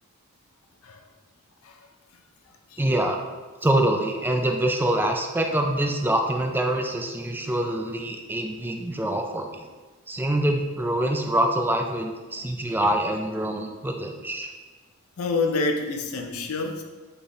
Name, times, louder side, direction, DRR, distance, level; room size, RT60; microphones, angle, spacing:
voice 1, 2.8-3.2 3.6-9.7 10.1-14.5, right 1 dB, 10° right, 3 dB, 0.3 m, -25 dB
voice 2, 15.2-16.8, left 3 dB, 85° left, 4 dB, 0.5 m, -27 dB
4.2 x 3.4 x 3.5 m, 1.3 s
head